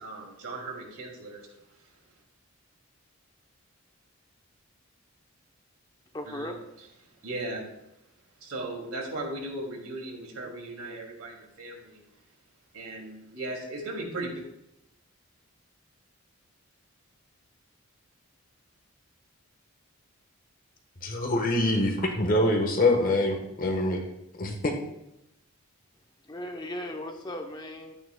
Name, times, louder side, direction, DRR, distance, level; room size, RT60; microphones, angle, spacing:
voice 1, 0.0-1.5 1.8-1.9 6.3-6.5 7.2-7.7 8.4-12.0 12.7-14.5, right 2 dB, 85° right, 0 dB, 2.4 m, -37 dB
voice 2, 6.1-6.6 26.2-27.9, left 1 dB, 20° left, 4 dB, 0.6 m, -37 dB
voice 3, 21.0-24.0 24.3-24.8, left 1 dB, 40° left, 3 dB, 1.2 m, -25 dB
12.5 x 8.8 x 2.2 m, 0.84 s
head